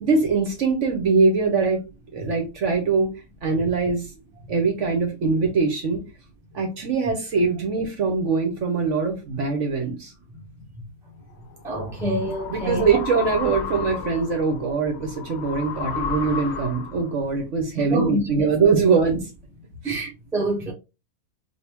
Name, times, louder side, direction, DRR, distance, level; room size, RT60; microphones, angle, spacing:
voice 1, 0.0-1.8 2.1-3.1 3.4-4.1 4.5-6.0 6.5-10.1 12.5-19.3 19.8-20.0, right 4 dB, 60° right, 0.9 m, -22 dB
sound 1, 11.4-17.2, left 6 dB, 70° left, 0.6 m, -33 dB
voice 2, 11.6-12.8 17.9-18.5 19.8-20.7, right 1 dB, 5° right, 0.6 m, -26 dB
3.4 x 2.6 x 2.9 m
omnidirectional pair, 1.7 m